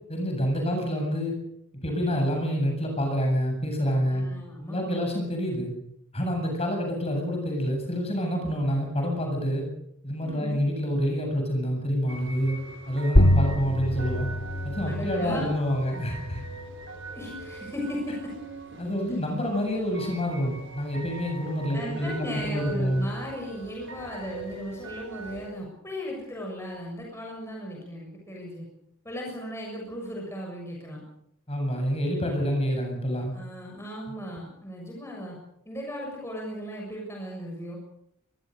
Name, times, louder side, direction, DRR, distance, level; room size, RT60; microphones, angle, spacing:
voice 1, 0.1-1.4 1.8-4.3 4.7-5.7 6.1-9.6 10.0-12.6 12.9-14.3 14.6-16.4 18.8-23.1 31.5-33.3, equal, 30° left, 3 dB, 8.0 m, -27 dB
voice 2, 4.1-5.0 10.2-10.6 14.8-15.5 17.1-18.3 21.7-28.7 29.0-31.0 33.3-35.4 35.7-37.8, equal, 10° left, -2 dB, 6.9 m, -36 dB
sound 1, 12.1-25.5, right 3 dB, 55° right, 4.5 m, -43 dB
sound 2, 13.2-18.2, equal, 70° left, 2.4 m, -26 dB
24.0 x 22.0 x 6.7 m, 0.75 s
head